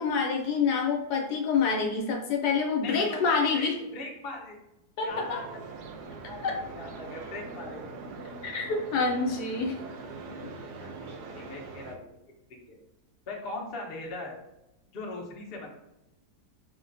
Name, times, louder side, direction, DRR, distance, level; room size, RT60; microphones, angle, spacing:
voice 1, 0.0-3.8 5.0-5.4 6.4-6.6 8.4-9.8, left 5 dB, 70° left, 1 dB, 1.1 m, -27 dB
voice 2, 2.8-4.6 5.0-5.6 6.2-7.8 9.0-9.1 10.8-12.2 12.7-12.8 13.3-14.4 14.9-15.8, left 2 dB, 50° left, -1 dB, 0.7 m, -40 dB
sound 1, 5.1-12.0, right 3 dB, 75° right, 1.1 m, -42 dB
6.3 x 2.2 x 2.5 m, 0.90 s
omnidirectional pair, 1.9 m